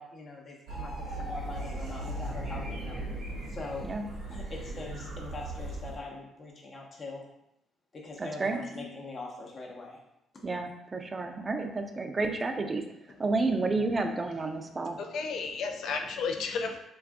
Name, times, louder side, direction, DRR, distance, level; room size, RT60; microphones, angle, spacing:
voice 1, 0.0-3.0 3.5-3.9 4.3-7.3 7.9-10.0 10.3-10.4, left 3 dB, 50° left, -1 dB, 0.8 m, -42 dB
sound 1, 0.7-6.0, right 1 dB, 80° right, 0.9 m, -37 dB
voice 2, 8.2-8.6 10.4-12.9 13.2-15.0, right 3 dB, 30° right, 5 dB, 0.4 m, -30 dB
voice 3, 14.7-16.8, left 4 dB, 70° left, 5 dB, 0.4 m, -33 dB
2.6 x 2.4 x 3.4 m, 0.83 s
supercardioid pair, 70°, 0 cm